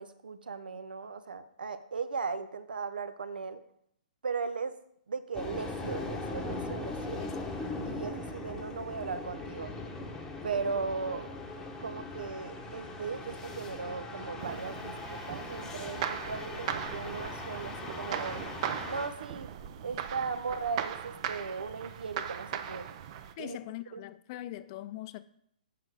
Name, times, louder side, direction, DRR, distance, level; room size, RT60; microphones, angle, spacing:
voice 1, 0.0-3.6 4.2-4.8 5.1-7.3 7.8-9.7 10.4-11.3 11.8-18.4 18.9-19.5 19.8-22.9 23.4-23.6 23.9-24.0, right 5 dB, 75° right, 0.8 m, -37 dB
sound 1, 5.3-19.1, left 2 dB, 10° left, 1.0 m, -40 dB
voice 2, 7.2-7.5 23.4-25.2, left 14 dB, 35° left, 0.4 m, -42 dB
sound 2, 14.4-23.3, right 9 dB, 40° right, 0.6 m, -39 dB
7.6 x 5.9 x 4.8 m
hypercardioid pair, 130°, 5 cm